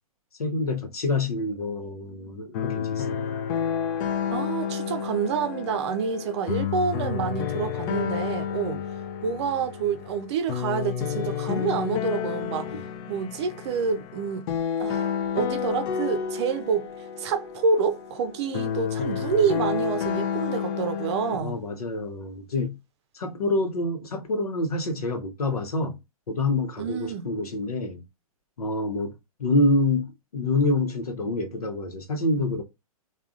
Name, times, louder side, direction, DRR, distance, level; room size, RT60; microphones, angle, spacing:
voice 1, 0.4-3.4 8.7-8.8 12.7-12.8 21.4-22.8 23.1-26.0 26.3-28.0 28.6-29.1 29.4-32.6, left 2 dB, 85° left, 0.9 m, -27 dB
sound 1, 2.5-21.4, left 8 dB, 35° left, 0.4 m, -30 dB
voice 2, 4.3-8.8 9.2-12.7 13.1-14.5 14.8-16.9 17.2-21.6 26.8-27.3, right 6 dB, 50° right, 0.6 m, -28 dB
3.5 x 2.4 x 2.4 m
hypercardioid pair, 125°, 19 cm